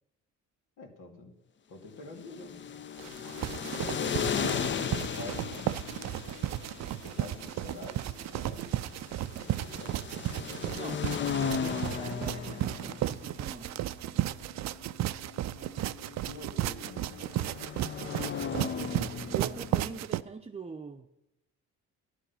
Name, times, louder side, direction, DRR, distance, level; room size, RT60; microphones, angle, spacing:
voice 1, 0.8-1.3 1.7-2.6 4.8-6.0 6.4-8.9 9.2-10.0 15.6-15.7 16.3-17.3, left 3 dB, 85° left, 2.4 m, -47 dB
sound 1, 2.1-20.0, left 7 dB, 40° left, 0.6 m, -37 dB
sound 2, 3.0-20.2, right 14 dB, 65° right, 0.5 m, -34 dB
voice 2, 10.7-11.1 11.5-13.7 19.3-21.1, right 5 dB, 20° right, 0.7 m, -43 dB
12.5 x 10.0 x 5.8 m
cardioid pair, 90°, 30 cm